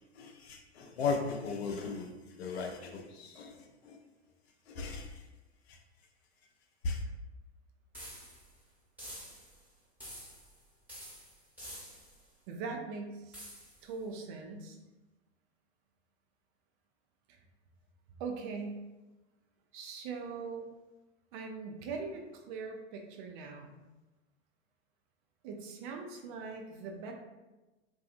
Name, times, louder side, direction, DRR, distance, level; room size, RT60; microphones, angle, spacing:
voice 1, 0.2-2.1 2.4-3.6 3.8-4.0 4.7-5.2 5.7-5.8 6.8-7.0, left 4 dB, 65° left, 3 dB, 0.5 m, -36 dB
sound 1, 7.9-8.5 9.0-9.6 10.0-10.6 10.9-12.2 13.3-13.8, equal, 5° right, 1.2 m, -48 dB
voice 2, 12.5-13.4 13.8-14.8 18.2-18.8 19.7-20.7 21.3-23.8 25.4-27.1, right 4 dB, 50° right, 2 dB, 0.5 m, -41 dB
2.6 x 2.3 x 2.5 m, 1.1 s
figure-of-eight pair, 90°, 34 cm